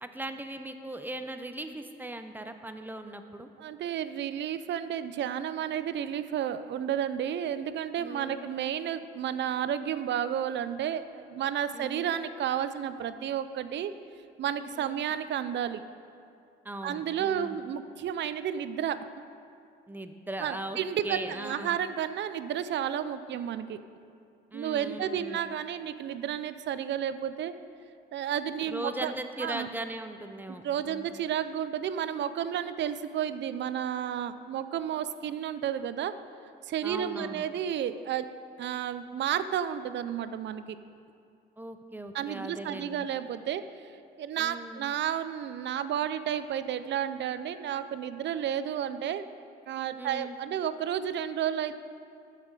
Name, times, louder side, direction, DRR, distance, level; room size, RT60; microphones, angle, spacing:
voice 1, 0.0-3.5 8.0-8.6 11.7-12.2 14.8-15.0 16.6-17.6 19.9-21.8 24.5-25.4 28.7-31.1 36.8-37.5 41.6-43.1 44.4-44.8 50.0-50.4, right 1 dB, 10° right, 7 dB, 0.7 m, -39 dB
voice 2, 3.6-13.9 14.4-15.8 16.8-19.1 20.4-23.8 24.5-27.5 28.1-29.1 29.4-29.7 30.6-36.1 36.6-38.3 38.6-40.8 42.1-43.9 44.2-49.2 49.7-51.7, right 9 dB, 65° right, 12 dB, 0.5 m, -32 dB
13.0 x 5.8 x 4.8 m, 2.5 s
cardioid pair, 90°, 20 cm